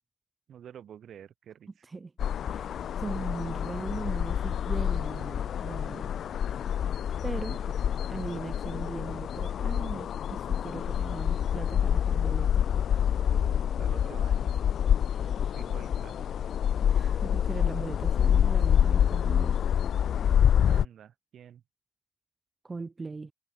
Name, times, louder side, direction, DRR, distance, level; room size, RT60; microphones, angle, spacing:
voice 1, 0.5-1.9 13.3-14.5 15.1-16.3 20.6-21.6, right 9 dB, 65° right, 5.0 m, -48 dB
sound 1, 2.2-20.8, left 9 dB, 65° left, 1.0 m, -27 dB
voice 2, 2.5-6.2 7.2-7.6 8.1-12.7 16.8-19.6 22.6-23.3, right 3 dB, 25° right, 1.9 m, -39 dB
cardioid pair, 90°, 0 cm